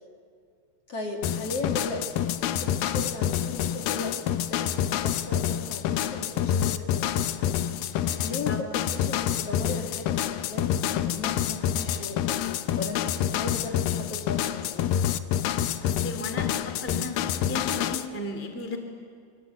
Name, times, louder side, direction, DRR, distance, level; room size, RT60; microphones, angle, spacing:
voice 1, 0.9-10.8 11.1-12.4 12.8-14.9, left 2 dB, 50° left, 2 dB, 1.9 m, -37 dB
sound 1, 1.2-18.1, left 10 dB, 85° left, 2.0 m, -27 dB
voice 2, 8.3-8.6 15.8-17.1 17.5-18.8, left 1 dB, 15° left, 5 dB, 0.5 m, -35 dB
26.0 x 24.0 x 8.2 m, 2.2 s
omnidirectional pair, 5.2 m